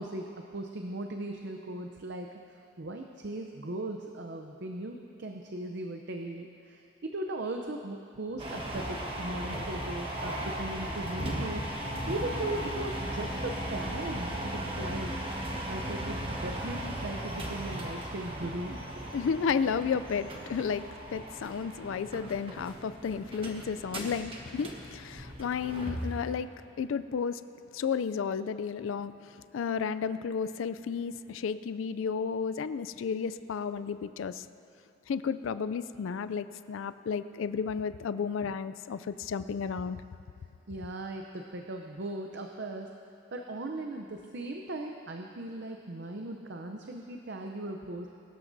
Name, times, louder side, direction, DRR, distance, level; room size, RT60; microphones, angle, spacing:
voice 1, 0.0-11.7 12.1-15.2 15.7-19.1 40.7-42.9 43.3-48.1, right 2 dB, 55° right, 3 dB, 0.6 m, -38 dB
sound 1, 8.4-26.3, right 1 dB, 25° right, 1.4 m, -37 dB
voice 2, 19.1-26.5 26.8-27.4 27.7-29.1 29.5-34.4 35.1-40.0, left 6 dB, 70° left, 13 dB, 0.3 m, -32 dB
23.0 x 13.5 x 2.7 m, 2.7 s
head